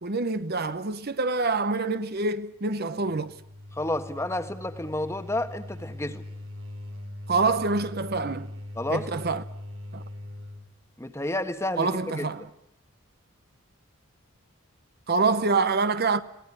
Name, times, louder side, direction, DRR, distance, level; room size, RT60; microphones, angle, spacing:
voice 1, 0.0-3.3 7.3-8.5 8.9-9.4 9.9-10.0 11.8-12.5 15.1-16.2, right 3 dB, 45° right, 0.9 m, -26 dB
sound 1, 3.0-10.7, left 1 dB, 85° right, 4.3 m, -41 dB
voice 2, 3.7-6.2 8.7-9.1 11.0-12.5, left 1 dB, 15° left, 1.3 m, -31 dB
23.0 x 18.5 x 9.8 m
head